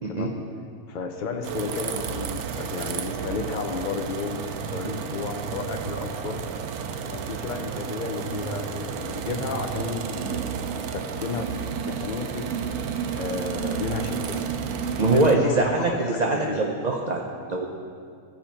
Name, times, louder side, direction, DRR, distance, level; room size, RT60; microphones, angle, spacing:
voice 1, 0.1-0.5 0.9-6.4 7.0-10.5 10.7-12.5 13.1-14.4 15.1-16.6, left 4 dB, 50° left, 3 dB, 0.6 m, -32 dB
sound 1, 1.4-15.4, right 7 dB, 70° right, 0.9 m, -31 dB
voice 2, 15.0-17.7, right 2 dB, 50° right, 0 dB, 0.5 m, -23 dB
15.0 x 5.1 x 4.4 m, 2.2 s
omnidirectional pair, 1.6 m